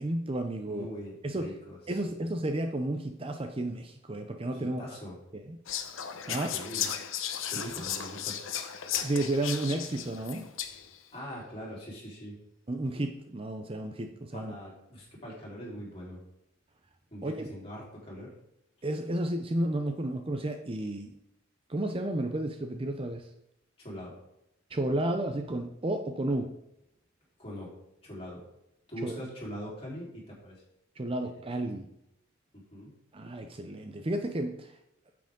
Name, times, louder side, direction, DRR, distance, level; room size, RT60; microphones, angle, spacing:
voice 1, 0.0-0.9 1.2-1.5 1.9-4.8 5.5-5.6 6.3-6.5 7.6-7.7 9.0-10.5 12.7-14.5 17.2-17.3 18.8-21.1 21.7-23.3 24.7-26.5 29.0-29.2 31.0-31.9 33.1-34.7, right 1 dB, 25° right, 6 dB, 0.6 m, -32 dB
voice 2, 0.6-2.2 4.5-5.1 6.3-6.9 7.5-8.5 11.1-12.4 14.3-16.2 17.1-18.3 18.8-18.9 23.8-24.2 27.4-27.7 28.0-28.5 28.9-30.5 31.2-31.3 32.5-32.9, equal, 30° left, -5 dB, 3.7 m, -42 dB
Whispering, 5.7-11.0, left 9 dB, 75° left, 0.8 m, -35 dB
9.0 x 7.7 x 3.7 m, 0.80 s
head